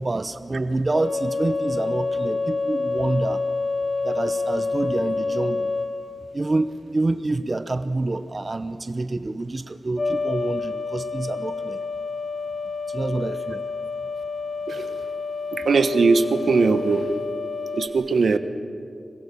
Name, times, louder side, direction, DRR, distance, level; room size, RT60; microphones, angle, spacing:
voice 1, 0.0-3.4 4.0-5.7 6.3-11.8 12.9-13.6, right 2 dB, 40° right, 10 dB, 0.9 m, -27 dB
sound 1, 0.9-5.9 10.0-17.9, left 3 dB, 45° left, 3.9 m, -28 dB
voice 2, 15.5-17.1 17.7-18.4, right 4 dB, 80° right, 9 dB, 1.2 m, -20 dB
26.0 x 21.0 x 7.0 m, 2.3 s
cardioid pair, 60°, 0 cm